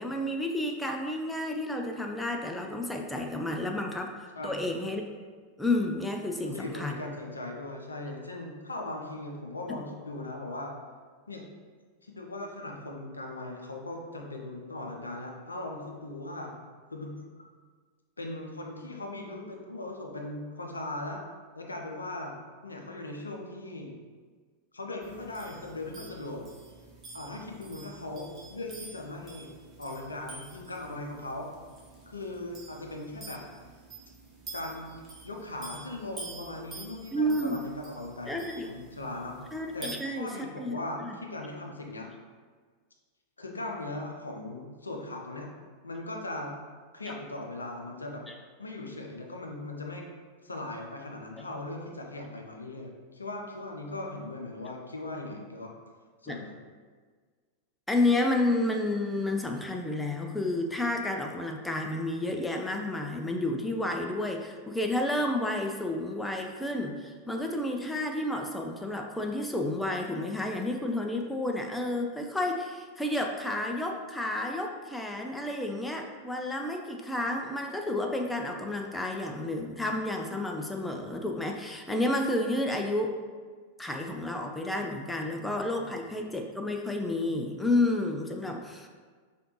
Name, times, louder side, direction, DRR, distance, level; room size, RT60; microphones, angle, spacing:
voice 1, 0.0-5.1 5.6-7.0 9.7-9.8 37.1-37.6 38.3-38.7 39.5-41.1 47.1-47.2 56.3-56.4 57.9-83.1 83.8-88.9, left 1 dB, 5° left, 2 dB, 0.4 m, -31 dB
voice 2, 6.4-10.7 11.3-11.4 12.0-16.6 16.9-17.2 18.2-21.2 21.5-22.4 22.6-23.9 24.7-26.4 27.1-29.5 29.8-31.5 32.1-33.4 34.5-34.9 35.2-39.4 39.7-42.1 43.4-45.5 45.8-46.6 46.9-48.2 48.6-50.0 50.4-55.7 56.2-56.6 85.2-86.0, left 2 dB, 80° left, 1 dB, 0.5 m, -39 dB
sound 1, 25.0-40.0, right 2 dB, 20° right, 1.0 m, -48 dB
4.9 x 2.4 x 2.9 m, 1.6 s
figure-of-eight pair, 90°, 0 cm